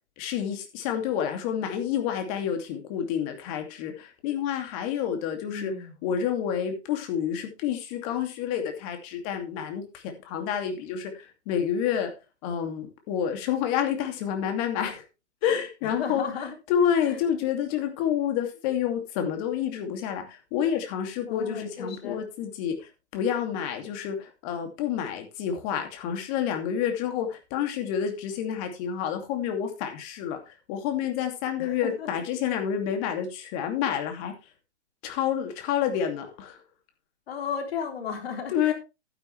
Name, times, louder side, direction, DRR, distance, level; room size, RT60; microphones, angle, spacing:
voice 1, 0.2-5.7 6.0-12.1 12.4-15.0 15.4-16.2 16.7-34.3 35.0-36.6 38.5-38.7, left 9 dB, 30° left, 5 dB, 2.6 m, -29 dB
voice 2, 5.5-5.9 15.8-16.5 17.0-17.2 21.3-22.2 31.6-32.1 37.3-38.7, left 6 dB, 60° left, 4 dB, 3.7 m, -34 dB
11.5 x 10.0 x 3.3 m, 0.28 s
hypercardioid pair, 145°, 35 cm